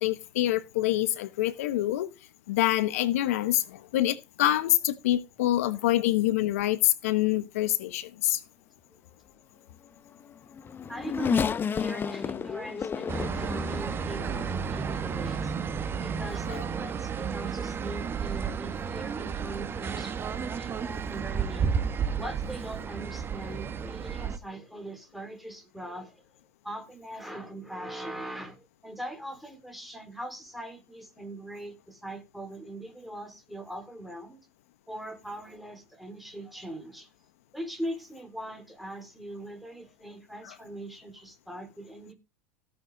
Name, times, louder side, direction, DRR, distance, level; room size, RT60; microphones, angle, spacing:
voice 1, 0.0-2.1 2.5-8.4 16.5-16.6 40.4-40.5, left 14 dB, 75° left, 1.1 m, -26 dB
Race car auto racing / Accelerating revving vroom, 10.2-14.8 15.4-15.5 16.7-16.9, left 6 dB, 25° left, 0.9 m, -31 dB
voice 2, 10.9-15.6 16.0-20.2 20.6-21.7 22.2-26.3 26.6-34.4 34.9-37.1 37.5-42.1, right 1 dB, ahead, 4.5 m, -41 dB
sound 1, 13.1-24.4, right 6 dB, 30° right, 1.4 m, -32 dB
17.0 x 7.1 x 4.0 m
hypercardioid pair, 95°, 8 cm